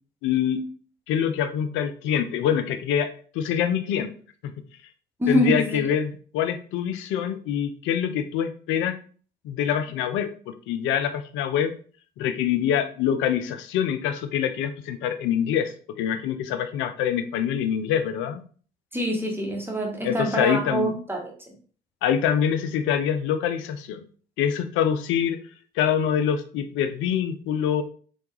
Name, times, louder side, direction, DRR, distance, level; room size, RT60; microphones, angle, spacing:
voice 1, 0.2-0.6 1.1-4.1 4.4-4.5 5.3-9.0 9.4-11.7 12.2-18.4 20.0-21.0 22.0-24.0 24.4-25.4 25.8-27.8, left 9 dB, 65° left, 10 dB, 0.4 m, -25 dB
voice 2, 5.2-5.9 18.9-21.3, equal, 10° right, 0 dB, 1.1 m, -25 dB
3.3 x 2.3 x 3.0 m, 0.43 s
hypercardioid pair, 50°, 21 cm